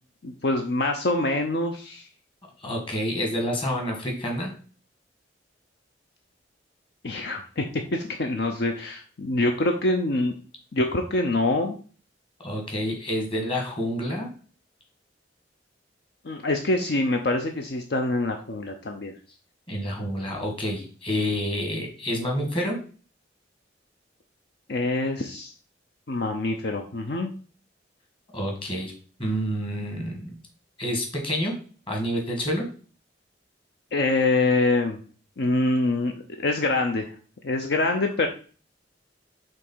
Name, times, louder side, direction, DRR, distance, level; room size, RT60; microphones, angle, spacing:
voice 1, 0.2-2.1 7.0-10.3 10.7-11.8 16.2-19.1 24.7-25.5 26.1-27.3 33.9-35.0 35.4-37.1 37.4-38.3, left 2 dB, 60° left, 4 dB, 0.7 m, -25 dB
voice 2, 2.6-4.5 12.4-14.3 19.7-22.8 28.3-28.9 29.2-30.4 30.8-31.5 31.9-32.7, equal, 30° left, 1 dB, 1.8 m, -28 dB
5.4 x 3.7 x 5.5 m, 0.40 s
head